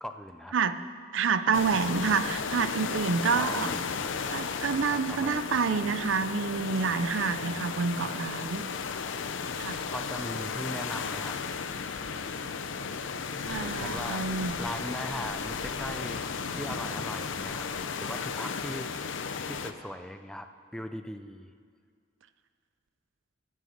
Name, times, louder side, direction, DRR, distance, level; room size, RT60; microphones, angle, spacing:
voice 1, 0.0-0.5 3.4-3.8 4.9-5.4 9.9-11.4 13.6-17.7 18.0-18.9 19.5-21.5, equal, 5° left, 8 dB, 0.3 m, -39 dB
voice 2, 1.1-3.7 4.3-8.7 9.6-9.8 13.4-14.5, right 5 dB, 70° right, 12 dB, 0.5 m, -28 dB
sound 1, 1.5-19.7, left 5 dB, 70° left, 0.6 m, -34 dB
13.0 x 6.3 x 7.9 m, 2.2 s
head